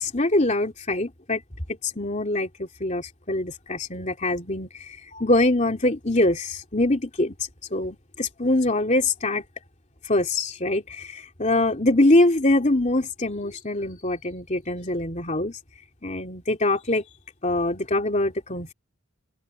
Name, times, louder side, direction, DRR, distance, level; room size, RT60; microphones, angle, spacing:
voice 1, 0.0-1.4 1.7-7.3 7.7-9.4 10.1-15.6 16.0-17.0 17.4-18.7, left 2 dB, 35° left, 3.0 m, -24 dB
head